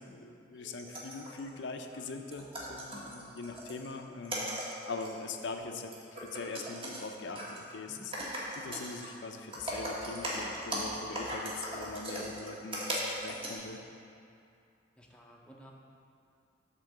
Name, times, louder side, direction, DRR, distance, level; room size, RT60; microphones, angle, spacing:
voice 1, 0.1-4.5 4.8-5.9 6.2-8.1 8.5-13.8, left 3 dB, 80° left, 5 dB, 0.5 m, -42 dB
sound 1, 0.6-1.5 1.9-2.0 2.3-3.9 4.2-5.1 5.5-5.6 5.9-7.0 7.4-7.6 8.0-9.1 9.4-13.6, equal, 30° right, 1.4 m, -38 dB
voice 2, 15.0-15.7, equal, 5° left, -2 dB, 0.6 m, -54 dB
8.1 x 3.7 x 6.5 m, 2.5 s
head